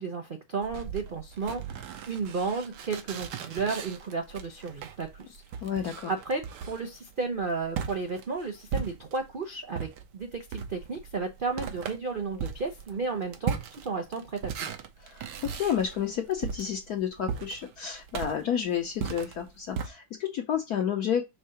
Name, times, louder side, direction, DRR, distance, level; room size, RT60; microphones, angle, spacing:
voice 1, 0.0-5.4 6.1-14.7, right 4 dB, 85° right, 0.4 m, -33 dB
sound 1, 0.6-9.4 9.7-19.9, right 7 dB, 70° right, 1.3 m, -38 dB
voice 2, 5.6-6.1 15.0-21.2, left 8 dB, 65° left, 1.1 m, -30 dB
4.7 x 3.7 x 5.5 m
omnidirectional pair, 2.1 m